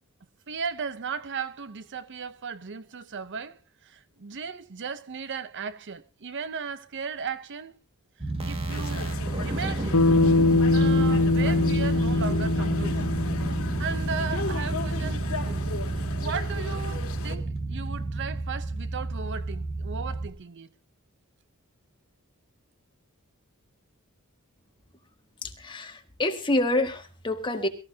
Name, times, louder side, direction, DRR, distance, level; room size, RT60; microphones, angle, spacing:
voice 1, 0.5-7.7 8.4-10.1 10.7-13.1 13.8-20.7, right 5 dB, 55° right, 0.7 m, -36 dB
sound 1, 8.2-20.3, right 2 dB, 25° right, 1.8 m, -30 dB
sound 2, 8.7-17.4, left 4 dB, 65° left, 1.9 m, -38 dB
Bass guitar, 9.9-14.4, left 2 dB, 85° left, 0.9 m, -23 dB
voice 2, 25.4-27.7, left 1 dB, 20° left, 1.8 m, -27 dB
23.0 x 14.5 x 2.7 m
head